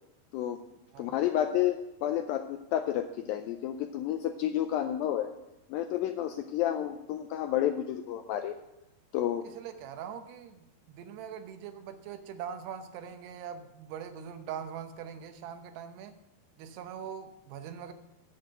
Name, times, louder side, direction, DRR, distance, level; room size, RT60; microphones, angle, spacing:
voice 1, 1.0-5.3 5.7-8.6 9.1-9.5, left 11 dB, 85° left, 6 dB, 2.1 m, -30 dB
voice 2, 9.4-16.1 16.6-17.9, right 8 dB, 85° right, 8 dB, 3.0 m, -42 dB
8.8 x 7.7 x 8.0 m, 0.94 s
omnidirectional pair, 4.7 m